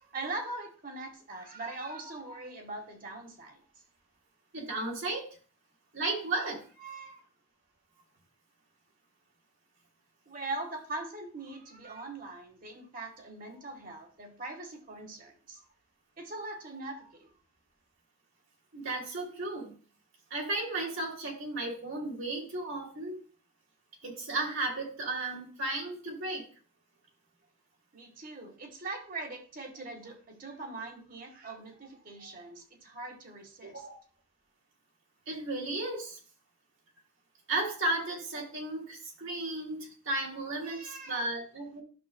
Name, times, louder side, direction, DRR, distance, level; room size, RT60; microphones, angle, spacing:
voice 1, 0.0-3.6 6.8-7.2 10.3-15.7 16.2-17.3 27.9-33.8 40.6-41.2, right 2 dB, 40° right, 4 dB, 1.5 m, -41 dB
voice 2, 4.5-5.3 5.9-6.6 18.7-19.7 20.3-23.2 24.0-26.4 33.6-33.9 35.3-36.2 37.5-41.8, right 2 dB, 65° right, 0 dB, 2.5 m, -34 dB
12.0 x 6.5 x 2.2 m, 0.40 s
head